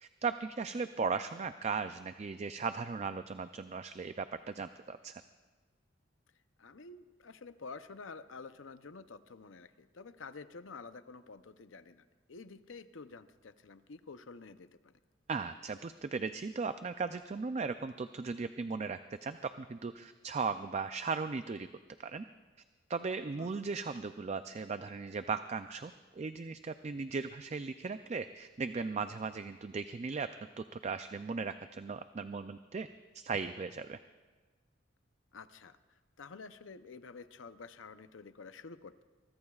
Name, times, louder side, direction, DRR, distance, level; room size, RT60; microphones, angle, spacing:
voice 1, 0.0-5.1 15.3-21.7 22.0-22.2 22.9-30.3 30.6-32.9 33.1-34.0, right 4 dB, 35° right, 10 dB, 0.4 m, -37 dB
voice 2, 6.6-14.9 23.4-23.7 35.3-39.0, left 4 dB, 85° left, 11 dB, 0.7 m, -50 dB
24.5 x 23.5 x 2.4 m, 1.4 s
head